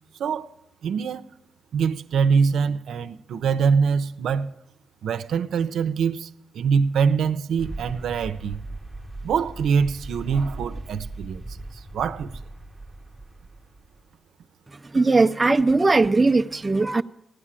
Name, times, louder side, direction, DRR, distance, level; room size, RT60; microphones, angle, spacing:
voice 1, 0.2-0.5 0.8-1.2 1.7-4.5 5.0-6.3 6.5-8.6 9.2-11.4 11.9-12.3, right 6 dB, 90° right, 0.6 m, -23 dB
sound 1, 7.6-14.1, right 2 dB, ahead, 0.8 m, -38 dB
voice 2, 14.9-17.0, right 3 dB, 20° right, 0.5 m, -19 dB
16.0 x 9.9 x 7.4 m
cardioid pair, 120°, 0 cm